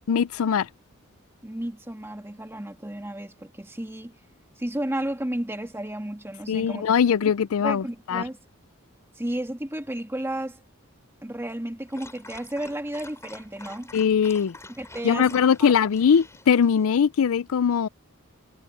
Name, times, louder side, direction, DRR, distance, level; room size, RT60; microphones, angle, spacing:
voice 1, 0.1-0.7 6.5-8.2 13.9-14.6 15.0-17.9, left 7 dB, 70° left, 0.4 m, -21 dB
voice 2, 1.4-4.1 4.6-6.9 7.6-8.4 9.1-10.6 11.2-13.9 14.8-15.3 15.6-15.7, right 1 dB, 10° right, 1.7 m, -32 dB
Dog, 11.9-16.9, left 2 dB, 15° left, 7.1 m, -47 dB
head